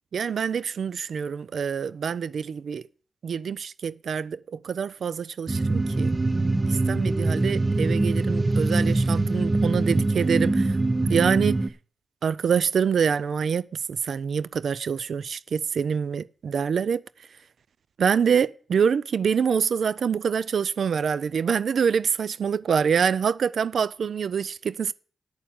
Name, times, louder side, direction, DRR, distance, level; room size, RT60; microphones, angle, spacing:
voice 1, 0.1-2.8 3.2-6.1 6.7-10.8 11.1-11.6 12.2-17.0 18.0-24.9, right 7 dB, 75° right, 0.4 m, -26 dB
sound 1, 5.5-11.7, right 2 dB, 25° right, 0.7 m, -23 dB
8.7 x 7.0 x 7.5 m
cardioid pair, 65°, 0 cm